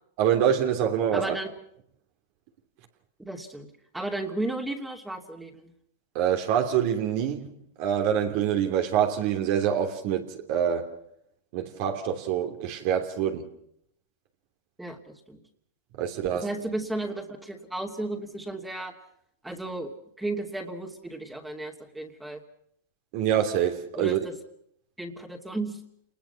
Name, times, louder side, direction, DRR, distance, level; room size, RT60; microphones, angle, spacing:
voice 1, 0.2-1.3 6.1-11.0 11.5-13.5 16.0-16.5 23.1-24.2, right 9 dB, 55° right, 3.0 m, -26 dB
voice 2, 1.1-1.5 3.2-5.7 14.8-15.4 16.4-18.9 19.4-19.9 20.2-22.4 23.9-24.3 25.0-25.8, right 2 dB, 5° right, 2.8 m, -34 dB
28.0 x 20.5 x 5.8 m
hypercardioid pair, 120°, 0 cm